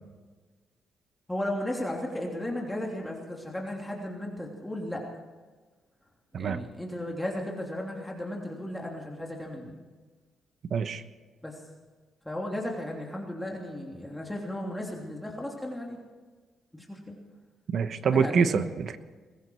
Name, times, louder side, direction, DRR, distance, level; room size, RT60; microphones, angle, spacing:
voice 1, 1.3-5.1 6.4-9.8 11.4-11.6 12.2-16.0 16.7-17.2 18.1-18.7, left 1 dB, 10° left, -1 dB, 3.0 m, -35 dB
voice 2, 10.7-11.0 17.7-19.0, right 6 dB, 55° right, 11 dB, 1.1 m, -25 dB
21.5 x 14.5 x 4.6 m, 1.4 s
cardioid pair, 90°, 0 cm